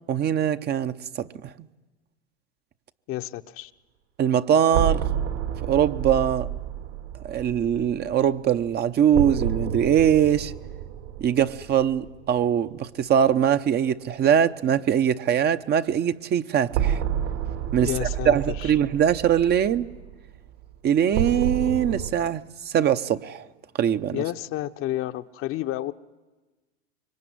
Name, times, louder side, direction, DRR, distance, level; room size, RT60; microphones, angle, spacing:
voice 1, 0.1-1.5 4.2-5.1 5.6-6.5 7.2-10.5 11.2-17.0 17.7-19.9 20.8-23.5 23.8-24.2, right 9 dB, 35° right, 0.9 m, -22 dB
voice 2, 3.1-3.7 17.8-18.7 24.1-25.9, left 15 dB, 45° left, 1.0 m, -30 dB
sound 1, 4.7-12.5 12.8-12.9 16.7-22.1, right 9 dB, 75° right, 4.1 m, -30 dB
25.5 x 23.5 x 9.6 m
hypercardioid pair, 105°, 31 cm